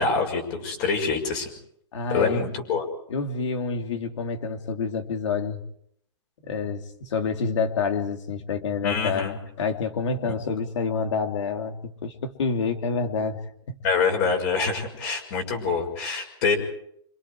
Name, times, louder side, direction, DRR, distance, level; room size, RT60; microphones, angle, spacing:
voice 1, 0.0-1.5 2.1-2.8 8.8-9.4 13.8-16.6, left 4 dB, 35° left, 3 dB, 6.0 m, -25 dB
voice 2, 1.9-2.5 3.1-5.6 6.5-13.4 13.7-13.8, left 5 dB, 80° left, 5 dB, 3.4 m, -28 dB
26.5 x 26.5 x 4.9 m, 0.70 s
hypercardioid pair, 160°, 15 cm